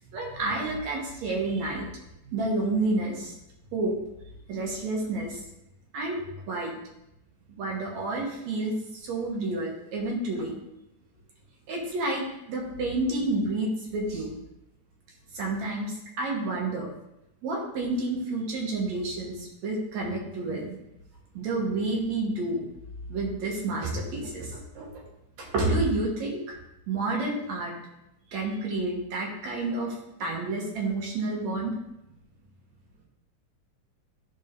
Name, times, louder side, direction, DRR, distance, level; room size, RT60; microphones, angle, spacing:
voice 1, 0.1-1.9 2.3-3.3 3.7-3.9 4.5-5.4 5.9-6.2 6.5-6.7 7.5-10.6 11.7-14.3 15.3-16.9 17.4-20.8 21.3-22.7 23.1-24.9 25.4-26.6 26.9-27.7 28.3-31.8, right 2 dB, 60° right, -2 dB, 2.4 m, -29 dB
14.0 x 4.8 x 2.7 m, 0.85 s
omnidirectional pair, 4.0 m